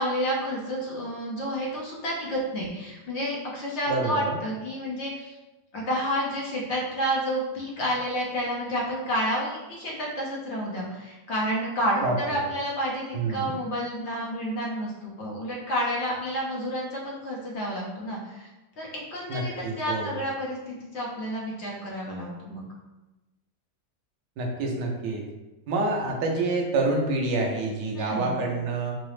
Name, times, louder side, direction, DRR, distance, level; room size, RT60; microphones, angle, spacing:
voice 1, 0.0-5.4 5.7-18.5 18.8-22.6 27.9-28.4, equal, 50° left, -3 dB, 1.0 m, -30 dB
voice 2, 3.9-4.4 12.0-12.2 13.1-13.5 19.3-20.1 24.4-25.2 25.7-29.0, right 3 dB, 85° right, 1 dB, 1.3 m, -27 dB
4.7 x 2.0 x 3.1 m, 1.1 s
omnidirectional pair, 1.8 m